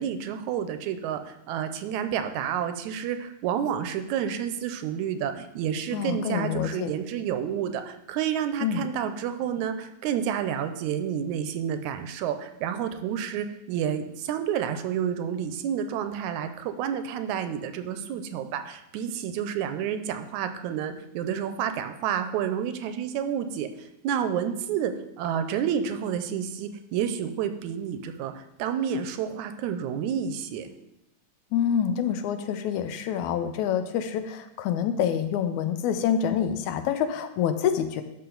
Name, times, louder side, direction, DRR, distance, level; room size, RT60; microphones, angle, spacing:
voice 1, 0.0-30.7, right 8 dB, 85° right, 9 dB, 2.0 m, -30 dB
voice 2, 5.9-6.9 8.6-8.8 31.5-38.0, left 8 dB, 80° left, 10 dB, 2.0 m, -27 dB
11.5 x 5.9 x 3.9 m, 0.89 s
omnidirectional pair, 3.4 m